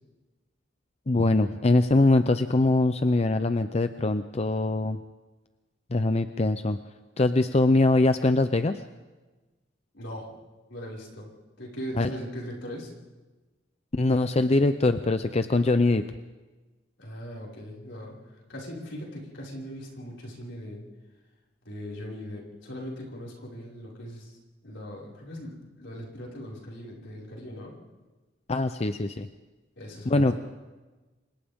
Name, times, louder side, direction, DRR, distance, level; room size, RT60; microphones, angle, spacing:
voice 1, 1.1-5.0 5.9-6.8 7.2-8.8 12.0-12.1 13.9-16.0 28.5-29.3 30.1-30.4, left 2 dB, 35° left, 9 dB, 0.6 m, -23 dB
voice 2, 9.9-10.3 10.7-11.3 11.6-12.9 17.0-18.2 18.5-20.8 21.6-27.8 29.8-30.4, equal, 70° left, -4 dB, 5.7 m, -40 dB
30.0 x 25.0 x 3.7 m, 1.2 s
head